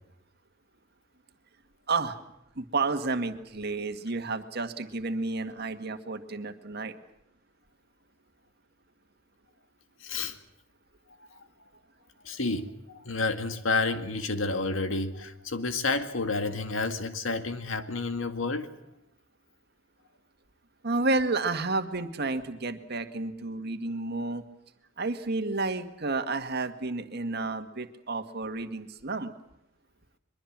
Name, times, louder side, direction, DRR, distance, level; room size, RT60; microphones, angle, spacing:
voice 1, 1.9-2.2 2.6-7.0 20.8-24.4 25.0-29.3, right 3 dB, 55° right, 1.8 m, -31 dB
voice 2, 10.0-10.4 11.2-11.4 12.2-18.7, left 3 dB, 90° left, 2.0 m, -30 dB
23.0 x 22.5 x 7.5 m
head